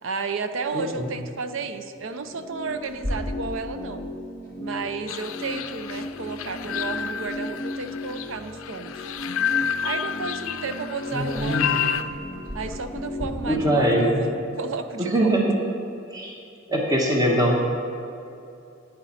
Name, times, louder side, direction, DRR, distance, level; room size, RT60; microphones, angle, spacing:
voice 1, 0.0-4.1 4.6-8.9 9.8-12.1 12.5-14.3 14.6-15.3, right 4 dB, 70° right, 9 dB, 0.6 m, -32 dB
voice 2, 0.7-1.1 11.1-11.8 13.5-14.3 15.0-15.6 16.1-16.3 16.7-17.6, right 1 dB, 20° right, -1 dB, 1.1 m, -22 dB
sound 1, 1.9-14.4, left 1 dB, 30° left, 0.5 m, -36 dB
Clock, 2.8-13.2, equal, 45° right, 2.4 m, -40 dB
sound 2, 5.1-12.0, left 8 dB, 85° left, 0.4 m, -30 dB
11.0 x 9.1 x 4.2 m, 2.7 s
head